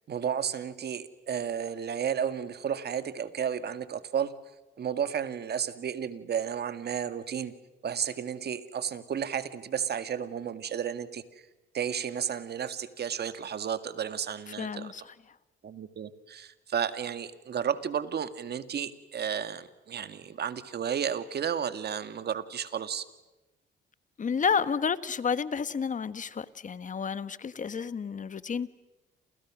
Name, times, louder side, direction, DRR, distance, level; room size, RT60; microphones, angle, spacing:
voice 1, 0.1-4.3 4.8-7.5 7.8-11.2 11.7-14.9 15.6-23.1, right 8 dB, 55° right, 11 dB, 2.0 m, -32 dB
voice 2, 14.6-15.0 24.2-28.7, left 6 dB, 40° left, 14 dB, 1.4 m, -30 dB
29.5 x 28.5 x 6.3 m, 1.0 s
cardioid pair, 90°, 20 cm